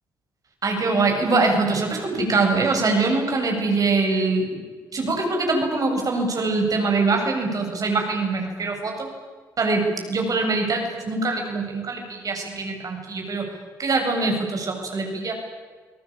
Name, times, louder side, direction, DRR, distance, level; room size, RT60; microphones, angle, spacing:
voice 1, 0.6-4.6 4.9-9.1 9.6-13.5 13.8-15.3, right 3 dB, 50° right, 3 dB, 7.9 m, -23 dB
29.5 x 19.0 x 8.9 m, 1.5 s
supercardioid pair, 60°, 8 cm